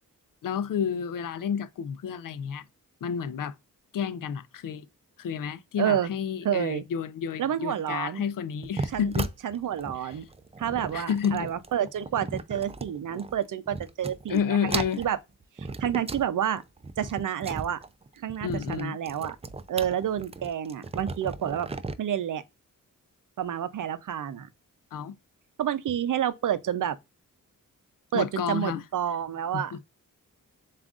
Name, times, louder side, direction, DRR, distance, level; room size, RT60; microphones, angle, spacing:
voice 1, 0.4-2.7 3.0-3.5 3.9-4.9 5.2-9.3 10.0-10.2 10.9-11.5 14.3-15.0 18.4-19.0 24.9-25.2 28.1-28.8 29.5-29.8, left 7 dB, 80° left, 0.5 m, -30 dB
voice 2, 5.8-6.1 6.4-6.8 7.4-8.2 8.9-9.1 9.4-10.3 10.6-15.2 15.6-16.6 17.0-17.8 18.2-19.4 19.7-21.7 22.0-22.4 23.4-24.5 25.6-27.0 28.1-29.8, right 9 dB, 70° right, 0.6 m, -29 dB
sound 1, 8.6-13.4 13.7-14.4 14.7-16.3 16.6-21.9, right 3 dB, 20° right, 0.4 m, -36 dB
7.0 x 2.5 x 2.4 m
wide cardioid pair, 95°, 33 cm